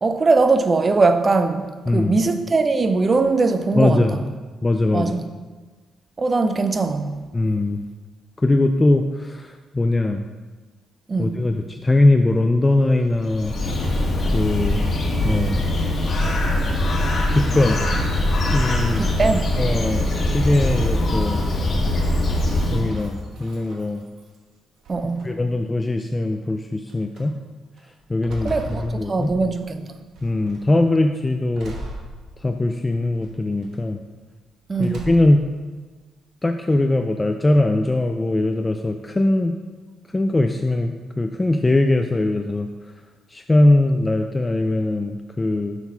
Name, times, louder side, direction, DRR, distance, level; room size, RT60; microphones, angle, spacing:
voice 1, 0.0-4.2 4.9-5.3 6.2-7.1 11.1-11.4 19.0-19.5 24.9-25.3 28.4-29.9 34.7-35.1, right 3 dB, 30° right, 8 dB, 0.6 m, -21 dB
voice 2, 1.9-2.2 3.8-4.2 4.6-5.1 7.3-7.8 8.4-10.2 11.2-13.5 14.3-14.8 15.2-15.6 17.3-17.8 18.4-19.0 19.6-21.4 22.7-24.0 25.2-27.3 28.1-29.3 30.2-31.7 32.4-34.0 34.8-35.4 36.4-39.5 40.1-42.7 43.3-45.8, left 2 dB, 20° left, 5 dB, 0.4 m, -20 dB
Bird, 13.1-23.2, left 1 dB, 45° left, 1.4 m, -22 dB
sound 1, 22.5-24.4 24.8-25.6 26.3-26.4 26.9-27.2 27.8-29.7 30.2-30.7 31.5-32.7 33.2-33.8 34.7-35.5, right 1 dB, 70° right, 1.2 m, -38 dB
6.8 x 4.1 x 5.5 m, 1.3 s
cardioid pair, 90°, 0 cm